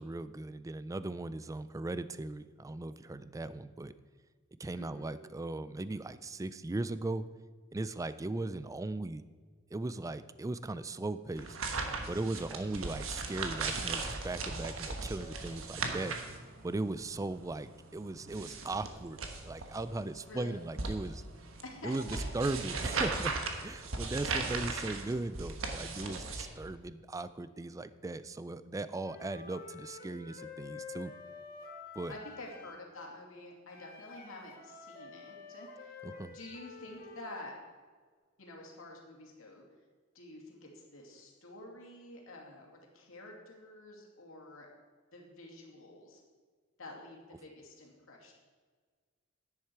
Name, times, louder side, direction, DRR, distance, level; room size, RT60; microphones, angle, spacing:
voice 1, 0.0-3.9 4.6-7.2 7.7-9.2 9.7-11.6 12.1-16.2 16.6-19.2 19.4-21.2 21.8-22.1 22.3-23.3 23.6-31.1 32.0-32.2 36.0-36.4, right 2 dB, 15° right, 14 dB, 0.3 m, -38 dB
voice 2, 4.8-5.3 12.9-13.0 20.3-20.6 21.6-22.2 32.1-36.0 36.3-37.5 38.4-39.6 40.1-44.7 45.1-46.2 46.8-48.3, left 2 dB, 85° left, -1 dB, 2.6 m, -49 dB
sound 1, 11.4-26.4, right 3 dB, 85° right, 1.3 m, -38 dB
Wind instrument woodwind instrument, 29.0-32.8 33.7-37.3, left 4 dB, 50° left, 1.5 m, -49 dB
10.5 x 10.0 x 4.6 m, 1.5 s
head